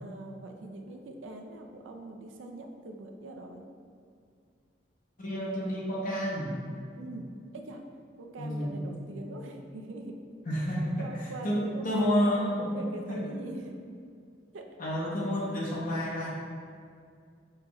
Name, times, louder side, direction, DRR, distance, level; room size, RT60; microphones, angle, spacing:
voice 1, 0.0-3.6 7.0-7.3 7.5-7.8 8.2-10.2 10.6-10.7 11.0-11.8 12.2-13.7 14.5-14.7, right 2 dB, 80° right, 3 dB, 0.4 m, -42 dB
voice 2, 5.2-6.6 8.4-8.9 10.5-11.1 11.4-12.8 13.1-13.2 14.8-16.3, equal, 45° left, -5 dB, 0.7 m, -30 dB
5.4 x 2.3 x 3.0 m, 2.2 s
head